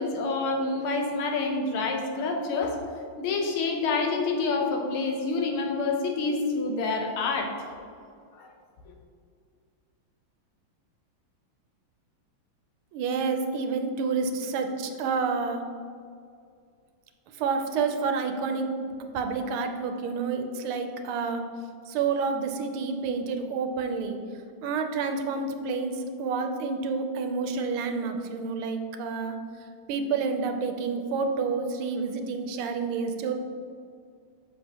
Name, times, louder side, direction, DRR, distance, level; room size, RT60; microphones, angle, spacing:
voice 1, 0.0-2.8 3.2-7.5 8.4-8.5, left 3 dB, 80° left, 2 dB, 1.7 m, -27 dB
voice 2, 12.9-15.6 17.4-18.7 19.1-21.4 21.9-24.2 24.6-29.4 29.9-33.3, right 5 dB, 85° right, 6 dB, 1.5 m, -29 dB
7.4 x 6.2 x 2.9 m, 2.3 s
omnidirectional pair, 2.3 m